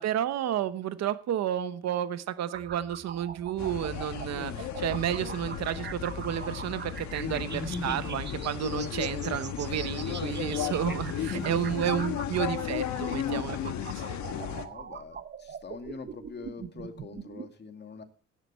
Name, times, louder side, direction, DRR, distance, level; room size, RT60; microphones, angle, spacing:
voice 1, 0.0-14.5, right 10 dB, 60° right, 13 dB, 1.0 m, -31 dB
sound 1, 2.5-17.5, right 7 dB, 35° right, 0.9 m, -43 dB
sound 2, 3.6-14.7, left 10 dB, 70° left, 1.5 m, -35 dB
voice 2, 7.2-8.4 11.2-12.0 14.2-18.0, left 3 dB, 35° left, 6 dB, 2.3 m, -40 dB
15.5 x 11.0 x 4.3 m, 0.39 s
cardioid pair, 125°, 30 cm